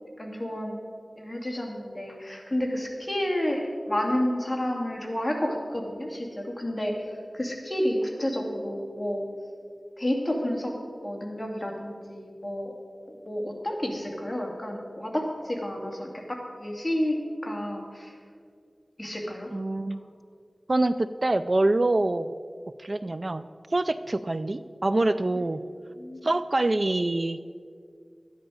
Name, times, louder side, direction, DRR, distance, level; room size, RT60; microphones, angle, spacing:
voice 1, 0.2-0.8 1.2-9.3 10.0-10.8 11.0-12.7 13.1-17.2 17.4-18.2 19.0-19.5 19.8-20.0 25.9-26.3, left 1 dB, 25° left, 0 dB, 2.5 m, -30 dB
voice 2, 19.5-20.0 20.7-22.3 22.8-25.6 26.2-27.4, right 2 dB, 50° right, 13 dB, 0.3 m, -25 dB
13.0 x 10.5 x 5.0 m, 2.2 s
wide cardioid pair, 50°, 0 cm